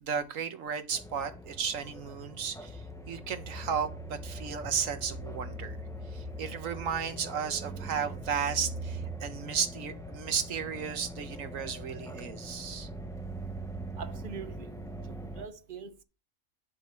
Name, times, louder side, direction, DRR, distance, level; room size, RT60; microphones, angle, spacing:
voice 1, 0.0-2.8 3.1-5.8 6.1-12.9, right 7 dB, 70° right, 1.4 m, -34 dB
sound 1, 0.9-15.5, right 1 dB, 5° left, 0.5 m, -41 dB
voice 2, 14.0-14.7 15.1-16.0, right 6 dB, 50° right, 0.7 m, -43 dB
10.5 x 4.2 x 4.4 m
omnidirectional pair, 1.4 m